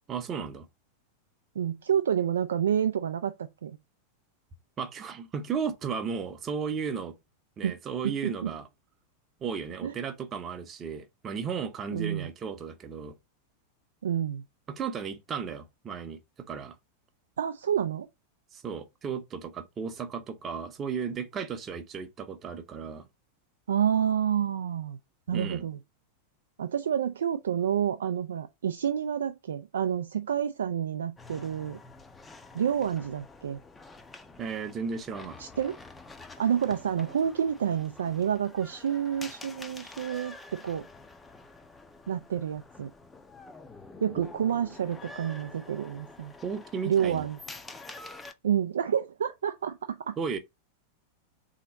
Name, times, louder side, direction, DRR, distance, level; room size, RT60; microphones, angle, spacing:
voice 1, 0.1-0.7 4.8-7.1 7.6-8.7 9.4-13.1 14.7-16.2 16.5-16.7 18.5-23.1 25.3-25.6 34.4-35.4 46.4-47.3 50.2-50.4, right 6 dB, 25° right, 0.7 m, -34 dB
voice 2, 1.6-3.8 7.6-7.7 8.0-8.5 9.8-9.9 11.9-12.3 14.0-14.4 17.4-18.1 23.7-25.0 25.3-25.8 26.6-31.8 32.5-33.6 35.4-35.8 36.4-40.9 42.1-42.9 44.0-46.3 46.8-47.4 48.4-50.2, right 9 dB, 65° right, 0.3 m, -29 dB
sound 1, 31.2-48.3, left 3 dB, 10° left, 0.5 m, -48 dB
3.8 x 2.8 x 4.1 m
figure-of-eight pair, 90°, 0 cm